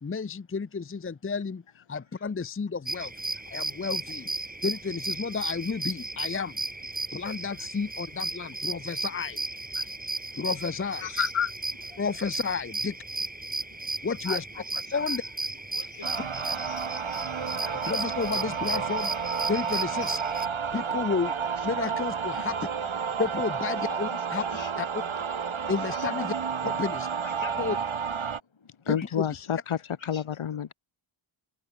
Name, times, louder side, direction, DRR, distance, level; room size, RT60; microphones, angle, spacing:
voice 1, 0.0-3.1 3.5-4.3 4.6-6.6 7.1-9.4 10.4-11.1 12.0-13.0 14.0-14.4 14.9-15.2 17.7-19.1 19.5-20.2 20.7-21.3 21.6-22.6 23.2-24.4 24.8-25.0 25.7-26.3 26.6-27.1 27.6-27.8 28.9-29.2, left 5 dB, 25° left, 0.7 m, -31 dB
sound 1, 2.9-20.5, right 2 dB, 20° right, 1.6 m, -35 dB
voice 2, 11.0-11.5 15.8-16.3 16.7-16.8 17.4-17.5 19.7-20.2 25.9-26.1 28.8-30.7, left 8 dB, 85° left, 1.2 m, -31 dB
voice 3, 14.0-15.2 15.7-16.6 17.1-17.2 17.6-18.1 20.1-20.5 22.4-22.7 24.1-24.7 27.2-27.9 28.6-28.7 29.0-29.1 30.0-30.2, left 5 dB, 70° left, 3.7 m, -45 dB
sound 2, 16.0-28.4, right 6 dB, 75° right, 2.1 m, -31 dB
wide cardioid pair, 65°, 48 cm